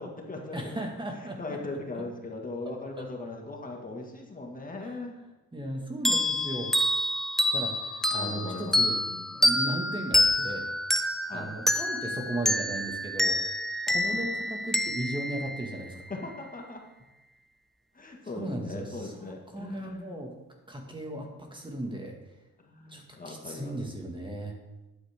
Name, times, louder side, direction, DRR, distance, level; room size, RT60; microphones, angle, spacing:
voice 1, 0.0-0.9 1.2-5.2 8.1-9.3 9.8-10.1 11.3-11.5 14.0-14.2 16.1-16.8 17.9-20.2 22.6-23.8, left 2 dB, 30° left, 1 dB, 1.9 m, -39 dB
voice 2, 0.5-1.6 2.7-3.1 4.8-5.0 5.5-6.7 7.5-9.0 9.3-10.7 11.3-13.4 13.9-16.0 18.4-20.3 20.7-22.2 22.9-24.6, right 1 dB, 15° right, 2 dB, 1.9 m, -36 dB
sound 1, 6.1-16.3, left 1 dB, ahead, 0.9 m, -28 dB
12.5 x 8.9 x 3.7 m, 1.0 s
cardioid pair, 90°, 30 cm